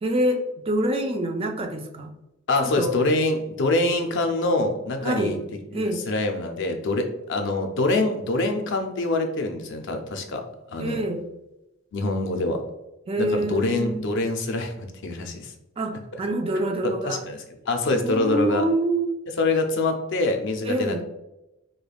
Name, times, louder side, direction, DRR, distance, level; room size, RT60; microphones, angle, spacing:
voice 1, 0.0-2.1 2.6-2.9 5.0-5.4 5.7-6.0 10.8-11.3 13.1-14.0 15.8-17.2 17.9-19.2 20.6-21.0, right 1 dB, 30° right, 5 dB, 0.4 m, -26 dB
voice 2, 2.5-5.4 5.7-10.4 10.7-11.0 11.9-12.6 13.2-15.5 16.8-18.6 19.4-21.0, left 2 dB, 60° left, 5 dB, 0.5 m, -25 dB
5.0 x 2.2 x 2.3 m, 0.94 s
head